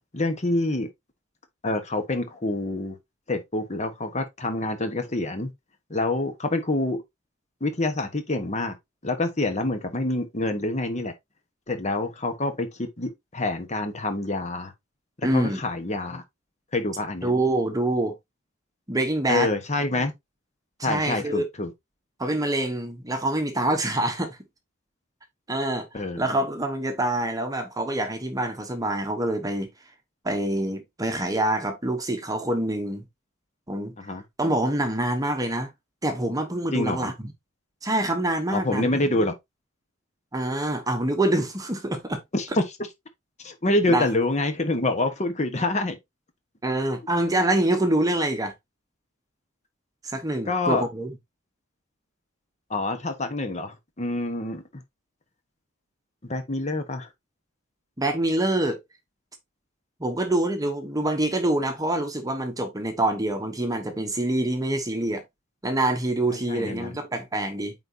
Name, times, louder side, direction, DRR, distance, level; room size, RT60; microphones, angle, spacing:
voice 1, 0.1-0.9 1.6-2.9 3.3-5.5 5.9-7.0 7.6-8.7 9.0-11.1 11.7-14.7 15.3-16.2 16.7-17.3 19.3-20.1 20.8-21.7 25.9-26.2 34.0-34.2 36.7-37.1 38.5-39.3 42.3-42.5 43.4-46.0 50.5-50.8 52.7-54.8 56.3-57.1 66.3-67.0, left 2 dB, 35° left, 1.3 m, -27 dB
voice 2, 15.2-15.6 17.2-18.1 18.9-19.5 20.8-21.4 22.2-24.4 25.5-29.7 30.2-33.0 33.7-33.9 34.4-35.7 36.0-37.1 37.8-39.1 40.3-42.2 43.9-44.1 46.6-48.5 50.0-51.1 58.0-58.8 60.0-65.2 65.6-67.7, right 1 dB, 15° right, 1.1 m, -26 dB
8.9 x 4.1 x 2.8 m
head